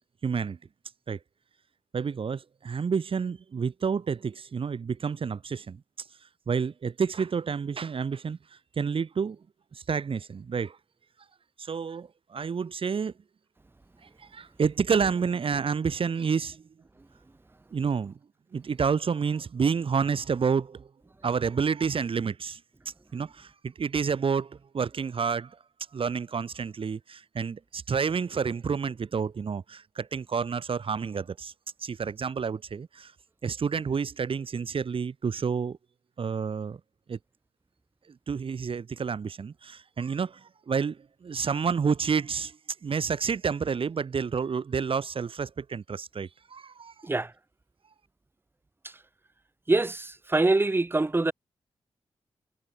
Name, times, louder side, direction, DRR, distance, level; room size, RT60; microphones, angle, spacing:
voice 1, 0.2-0.6 1.1-1.2 1.9-5.8 6.5-8.4 8.8-9.4 9.7-10.8 11.6-13.1 14.3-16.6 17.7-18.2 18.5-20.9 21.2-22.6 23.1-25.5 25.9-31.5 31.8-33.1 33.4-35.8 36.2-36.8 37.1-37.2 38.3-40.4 40.7-42.6 42.8-46.9, right 6 dB, 55° right, 0.8 m, -29 dB
voice 2, 49.7-51.3, right 2 dB, 20° right, 0.5 m, -24 dB
supercardioid pair, 45°, 11 cm